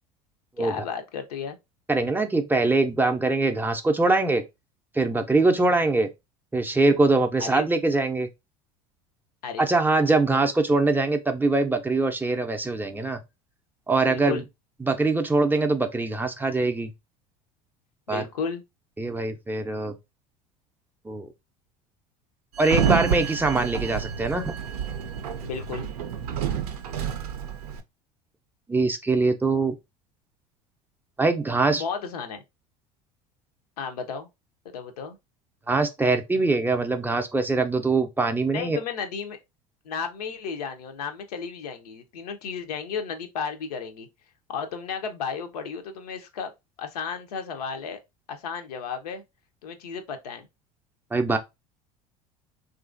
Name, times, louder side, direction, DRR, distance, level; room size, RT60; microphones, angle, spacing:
voice 1, 0.6-1.6 7.4-7.6 9.4-9.6 10.3-10.5 14.0-14.4 18.1-18.6 25.4-25.9 31.8-32.4 33.8-34.3 34.7-35.2 38.5-39.4 39.8-44.1 44.5-46.5 46.8-48.0 48.3-49.2 49.6-50.5, left 6 dB, 80° left, 0.6 m, -33 dB
voice 2, 1.9-4.4 5.0-6.1 6.5-8.3 9.6-13.2 13.9-14.4 14.8-16.9 18.1-18.2 19.0-19.9 21.1-21.3 22.6-24.5 28.7-29.7 31.2-31.8 35.7-38.8 51.1-51.4, right 3 dB, 10° right, 0.4 m, -23 dB
Sliding door, 22.6-27.8, right 8 dB, 80° right, 0.5 m, -29 dB
3.0 x 2.5 x 2.4 m
hypercardioid pair, 80°, 20 cm